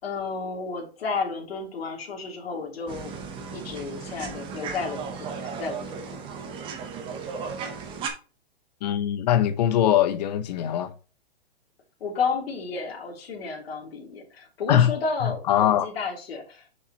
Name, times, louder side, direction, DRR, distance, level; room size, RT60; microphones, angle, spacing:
voice 1, 0.0-3.1 3.5-6.5 12.0-16.6, left 4 dB, 65° left, 3.2 m, -32 dB
sound 1, 2.9-8.1, right 5 dB, 15° right, 0.9 m, -35 dB
voice 2, 8.8-10.9 14.7-14.9 15.5-15.9, left 10 dB, 40° left, 0.9 m, -21 dB
7.1 x 6.6 x 3.0 m
hypercardioid pair, 160°, 32 cm